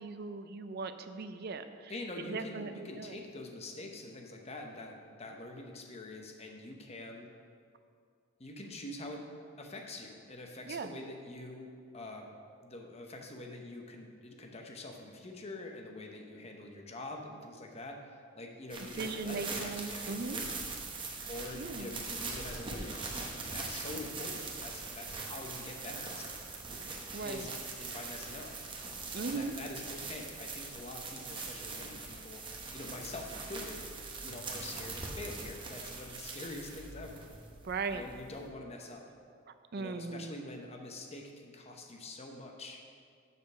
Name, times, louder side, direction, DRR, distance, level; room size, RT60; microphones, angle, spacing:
voice 1, 0.0-1.9 2.2-3.2 10.6-10.9 19.0-20.4 21.5-21.9 27.1-27.5 29.1-29.6 37.6-38.1 39.7-40.3, right 4 dB, 50° right, 10 dB, 0.4 m, -38 dB
voice 2, 1.9-7.3 8.4-9.2 9.6-11.7 11.9-12.3 12.6-20.5 21.3-26.6 27.2-27.5 27.8-28.5 29.3-32.4 32.7-33.8 34.2-37.3 37.9-39.0 39.7-42.8, left 2 dB, 30° left, 2 dB, 0.8 m, -45 dB
sound 1, 18.7-38.5, right 3 dB, 25° right, 0.8 m, -42 dB
6.7 x 5.2 x 6.2 m, 2.2 s
head